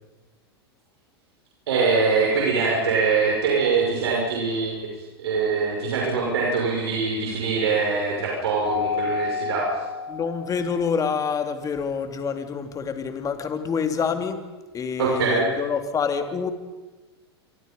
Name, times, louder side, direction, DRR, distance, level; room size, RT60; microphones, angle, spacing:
voice 1, 1.7-9.8 15.0-15.6, right 4 dB, 75° right, -3 dB, 6.3 m, -23 dB
Keyboard (musical), 8.6-10.9, left 6 dB, 70° left, 5.3 m, -30 dB
voice 2, 10.1-14.4 14.7-16.5, left 6 dB, 25° left, 7 dB, 3.1 m, -27 dB
26.0 x 25.0 x 5.5 m, 1.2 s
hypercardioid pair, 100°, 14 cm